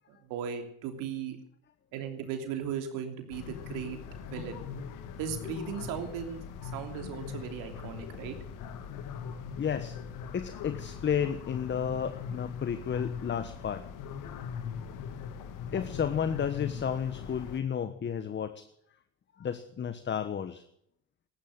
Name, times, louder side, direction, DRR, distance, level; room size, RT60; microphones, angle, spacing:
voice 1, 0.1-1.4 1.9-4.6 5.2-8.4, right 7 dB, 75° right, 5 dB, 3.2 m, -37 dB
sound 1, 3.3-17.6, left 7 dB, 70° left, 2.1 m, -40 dB
voice 2, 9.6-10.0 10.3-13.9 15.7-18.7 19.4-20.6, left 8 dB, 35° left, 12 dB, 1.2 m, -32 dB
14.5 x 12.5 x 7.9 m, 0.70 s
supercardioid pair, 85°, 32 cm